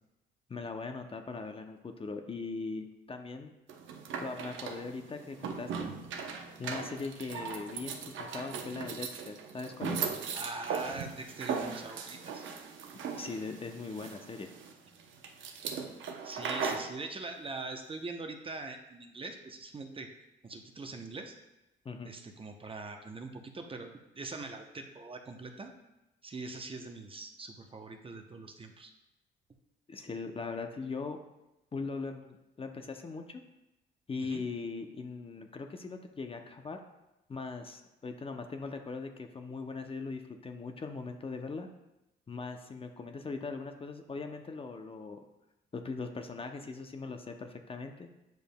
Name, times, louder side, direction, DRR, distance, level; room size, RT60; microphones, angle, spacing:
voice 1, 0.5-3.5 4.2-5.9 6.6-10.1 12.0-12.1 13.1-14.5 21.8-22.1 29.9-31.2 31.7-33.4 34.1-36.8 37.3-41.7 42.3-45.2 45.7-48.1, left 4 dB, 30° left, 5 dB, 0.6 m, -40 dB
sound 1, 3.7-16.9, right 5 dB, 75° right, 0.7 m, -38 dB
voice 2, 10.3-12.4 16.2-20.1 20.4-21.3 22.0-25.7 26.2-28.9 34.2-34.4, right 3 dB, 25° right, 4 dB, 0.7 m, -42 dB
9.1 x 5.1 x 2.2 m, 0.94 s
cardioid pair, 90°, 20 cm